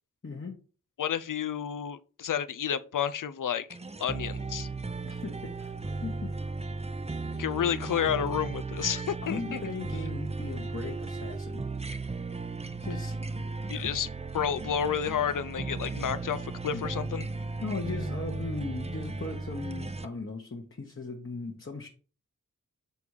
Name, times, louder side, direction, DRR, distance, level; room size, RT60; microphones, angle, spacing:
voice 1, 0.2-0.5 5.0-5.7 6.0-6.3 9.2-11.6 12.8-13.4 13.7-13.9 16.7-16.8 17.6-21.9, left 3 dB, 40° left, 1.1 m, -38 dB
voice 2, 1.0-3.7 4.0-4.7 7.4-9.6 13.7-14.1 14.3-17.3, left 8 dB, 80° left, 0.5 m, -30 dB
sound 1, 3.7-20.1, right 3 dB, 20° right, 0.5 m, -36 dB
6.9 x 3.5 x 4.7 m
wide cardioid pair, 50°, 31 cm